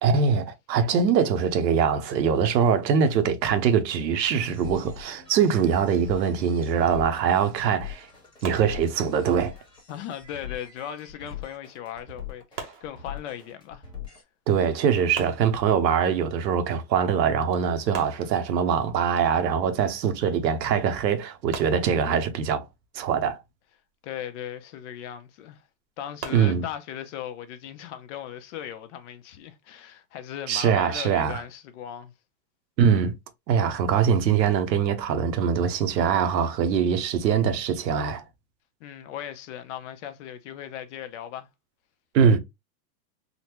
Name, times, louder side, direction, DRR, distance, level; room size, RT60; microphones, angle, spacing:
voice 1, 0.0-8.1 8.4-9.5 14.5-22.7 22.9-23.4 26.3-26.6 30.5-31.4 32.8-33.1 33.5-38.2 42.1-42.4, right 7 dB, 85° right, 0.9 m, -23 dB
sound 1, 4.3-14.2, left 9 dB, 10° left, 1.2 m, -42 dB
sound 2, 8.4-9.4 12.6-13.6 15.1-16.1 17.9-18.9 21.5-22.5 26.2-26.8, right 5 dB, 25° right, 0.7 m, -41 dB
voice 2, 9.9-13.9 24.0-25.7 26.0-32.1 38.8-41.5, left 10 dB, 45° left, 0.7 m, -38 dB
3.9 x 2.2 x 2.9 m
supercardioid pair, 145°, 50 cm